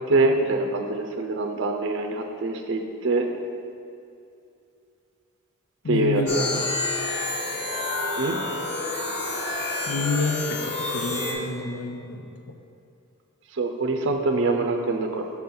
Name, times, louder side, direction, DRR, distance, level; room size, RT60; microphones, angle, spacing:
voice 1, 0.1-3.3 5.9-6.6 8.2-8.4 13.5-15.3, right 2 dB, 55° right, 4 dB, 0.5 m, -24 dB
voice 2, 5.8-6.6 9.9-12.2, left 3 dB, 75° left, 4 dB, 0.6 m, -28 dB
sound 1, 6.3-11.3, left 2 dB, 50° left, 0.9 m, -29 dB
5.9 x 3.8 x 5.9 m, 2.5 s
head